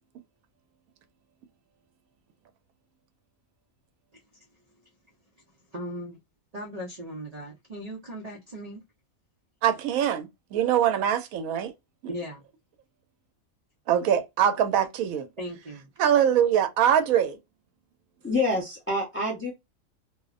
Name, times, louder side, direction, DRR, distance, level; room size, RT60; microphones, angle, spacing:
voice 1, 5.7-6.2 6.5-8.8 12.1-12.4 15.4-15.9, equal, 60° right, 0.4 m, -37 dB
voice 2, 9.6-11.7 13.9-15.3 16.0-17.4, right 9 dB, 80° right, 1.0 m, -23 dB
voice 3, 18.2-19.5, left 2 dB, 15° left, 0.4 m, -27 dB
2.6 x 2.0 x 2.4 m
omnidirectional pair, 1.5 m